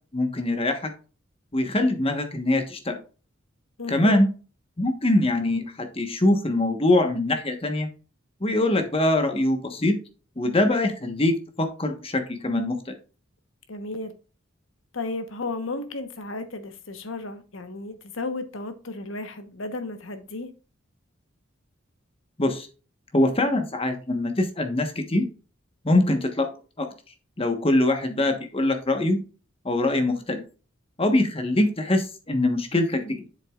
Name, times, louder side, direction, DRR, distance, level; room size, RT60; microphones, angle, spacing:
voice 1, 0.1-0.9 1.5-3.0 3.9-4.3 4.8-7.9 8.4-9.9 10.4-12.9 22.4-22.7 23.1-25.2 25.8-26.5 26.8-26.9 27.4-29.2 29.6-30.4 31.0-33.3, left 1 dB, 30° left, 1.2 m, -23 dB
voice 2, 3.8-4.2 13.7-14.1 14.9-20.5, left 3 dB, 75° left, 1.1 m, -34 dB
7.6 x 6.8 x 2.4 m
head